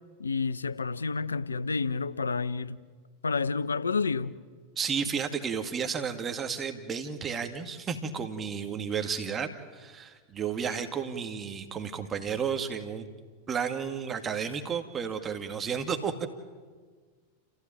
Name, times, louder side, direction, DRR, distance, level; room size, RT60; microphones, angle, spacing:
voice 1, 0.2-2.8 3.2-4.4, left 4 dB, 85° left, 0.8 m, -29 dB
voice 2, 4.8-13.1 13.5-16.3, right 6 dB, 25° right, 2.1 m, -32 dB
30.0 x 15.5 x 9.2 m
figure-of-eight pair, 95°, 0 cm